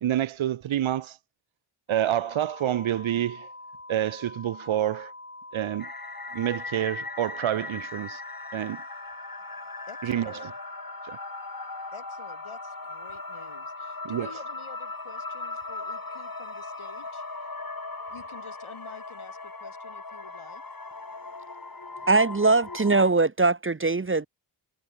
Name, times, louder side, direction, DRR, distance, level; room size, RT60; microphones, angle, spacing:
voice 1, 0.0-1.2 1.9-3.5 3.9-5.1 5.5-5.9 6.3-8.2 8.5-8.8 10.0-10.3 11.1-11.2 14.0-14.3, right 11 dB, 80° right, 0.6 m, -27 dB
sound 1, 1.9-18.6, left 2 dB, 25° left, 7.2 m, -45 dB
sound 2, 5.8-23.1, left 3 dB, 45° left, 7.1 m, -39 dB
voice 2, 9.9-10.5 11.9-17.2 18.1-20.6, left 5 dB, 85° left, 4.9 m, -49 dB
voice 3, 22.1-24.3, right 3 dB, 25° right, 0.7 m, -21 dB
wide cardioid pair, 70°, 48 cm